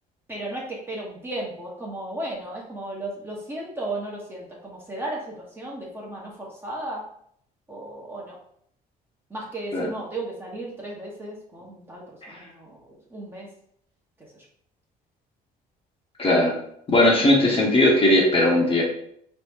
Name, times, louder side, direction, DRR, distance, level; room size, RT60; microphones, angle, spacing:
voice 1, 0.3-7.0 7.7-8.4 9.3-12.8 13.1-13.5, right 1 dB, 15° right, -3 dB, 1.3 m, -35 dB
voice 2, 16.2-16.6 16.9-18.8, left 1 dB, 35° left, -3 dB, 1.3 m, -18 dB
3.7 x 3.2 x 3.7 m, 0.67 s
cardioid pair, 110°, 17 cm